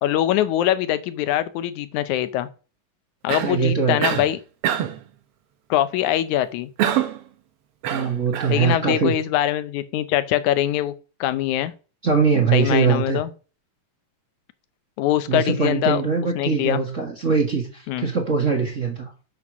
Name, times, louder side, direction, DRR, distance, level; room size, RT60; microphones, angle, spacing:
voice 1, 0.0-2.5 3.2-4.4 5.7-6.7 8.5-10.9 11.2-11.7 12.5-13.3 15.0-16.0 16.4-16.8 17.9-18.1, left 12 dB, 85° left, 2.2 m, -23 dB
Cough, 3.3-3.6 4.0-4.3 4.6-5.0 6.8-7.2 7.8-8.6, right 10 dB, 65° right, 1.7 m, -24 dB
voice 2, 3.4-4.2 7.9-9.2 12.0-13.2 15.3-19.1, right 5 dB, 35° right, 1.3 m, -22 dB
7.7 x 6.0 x 6.0 m
omnidirectional pair, 3.3 m